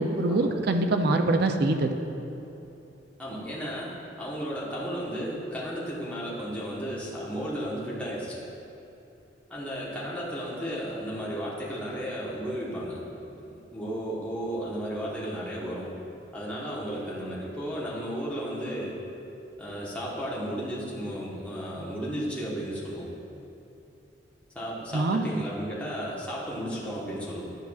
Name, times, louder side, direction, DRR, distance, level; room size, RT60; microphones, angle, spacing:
voice 1, 0.0-1.9 24.9-25.2, right 2 dB, 60° right, 6 dB, 0.5 m, -24 dB
voice 2, 3.2-8.4 9.5-13.0 13.4-15.9 16.3-19.0 19.6-23.1 24.5-27.4, equal, 10° left, -7 dB, 1.1 m, -34 dB
10.5 x 5.7 x 2.4 m, 2.9 s
head